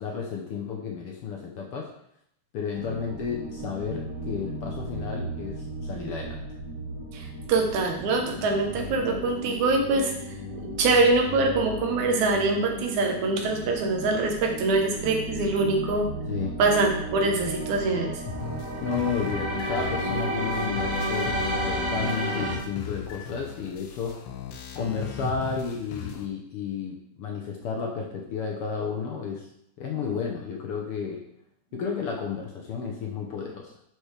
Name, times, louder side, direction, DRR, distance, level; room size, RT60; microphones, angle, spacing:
voice 1, 0.0-1.9 2.5-6.4 16.3-16.6 18.7-21.3 21.6-24.2 24.7-29.5 29.8-31.2 31.7-33.7, left 6 dB, 65° left, 1 dB, 1.5 m, -32 dB
sound 1, 2.7-22.6, equal, 35° right, 1.4 m, -33 dB
voice 2, 7.1-10.1 10.8-16.1 16.6-18.2 29.9-30.1, right 3 dB, 85° right, 3 dB, 2.5 m, -24 dB
sound 2, 18.3-26.3, left 6 dB, 90° left, 2.1 m, -38 dB
11.0 x 4.7 x 3.4 m, 0.72 s
omnidirectional pair, 3.3 m